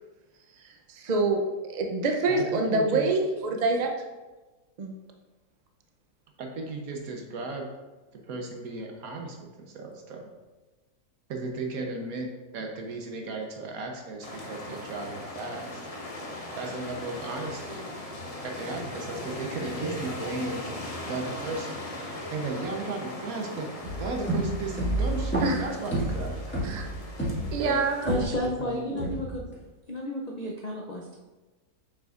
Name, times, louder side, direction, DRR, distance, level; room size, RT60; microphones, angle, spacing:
voice 1, 0.9-3.9 4.8-4.9 25.4-25.7 26.6-26.8 27.5-28.1, right 3 dB, 45° right, 3 dB, 0.6 m, -26 dB
voice 2, 2.3-3.1 6.4-7.7 8.1-10.3 11.3-15.8 16.5-17.9 18.4-20.7 21.1-21.8 22.3-23.7 24.0-26.4 27.6-27.8 28.1-29.1, right 3 dB, 70° right, 2 dB, 1.3 m, -35 dB
sound 1, 14.2-28.1, left 1 dB, 30° left, 0.8 m, -39 dB
sound 2, 23.8-28.6 29.0-29.5, right 1 dB, 5° left, 1.7 m, -30 dB
voice 3, 28.0-29.4 29.9-31.2, left 1 dB, 60° left, -1 dB, 0.4 m, -32 dB
6.9 x 6.2 x 2.5 m, 1.2 s
omnidirectional pair, 1.6 m